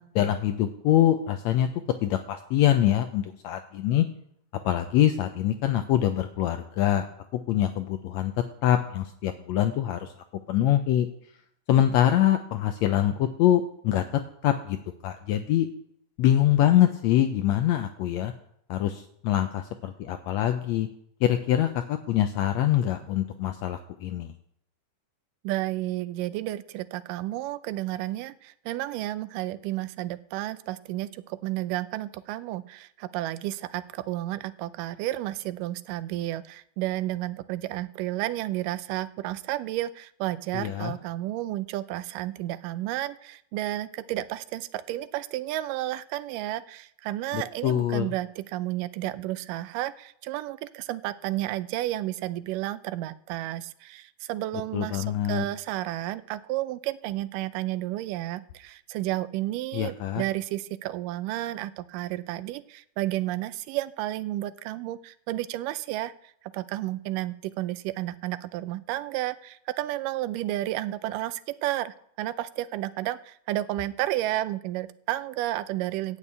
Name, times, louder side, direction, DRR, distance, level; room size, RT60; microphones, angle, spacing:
voice 1, 0.1-1.7 2.0-4.0 4.6-7.1 7.3-8.3 8.6-10.1 10.5-11.1 11.7-14.0 14.4-14.8 15.0-15.7 16.2-18.3 18.7-20.9 21.2-24.3 40.5-40.9 47.3-48.1 54.7-55.4 59.7-60.2, left 12 dB, 80° left, 8 dB, 1.6 m, -24 dB
voice 2, 25.4-76.2, right 15 dB, 90° right, 15 dB, 2.2 m, -32 dB
11.0 x 6.4 x 8.7 m, 0.71 s
omnidirectional pair, 3.7 m